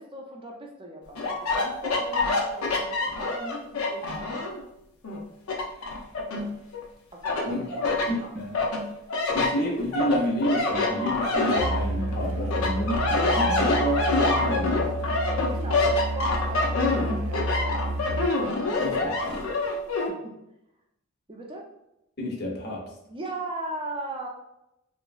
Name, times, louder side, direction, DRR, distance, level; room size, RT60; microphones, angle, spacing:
voice 1, 0.0-4.4 7.1-8.4 15.5-18.0 18.6-19.7 20.1-20.4 21.3-21.7 23.1-24.3, right 1 dB, 25° right, 0 dB, 0.5 m, -39 dB
sound 1, 1.2-4.6 5.0-6.8 7.2-8.1 8.5-12.2 12.5-20.1, left 2 dB, 85° left, 0.5 m, -26 dB
voice 2, 8.1-8.5 9.3-14.9 18.8-19.3 22.2-22.8, left 1 dB, 50° left, -2 dB, 0.7 m, -29 dB
Musical instrument, 11.5-18.4, right 1 dB, 85° right, 0.3 m, -30 dB
2.9 x 2.5 x 2.3 m, 0.84 s
head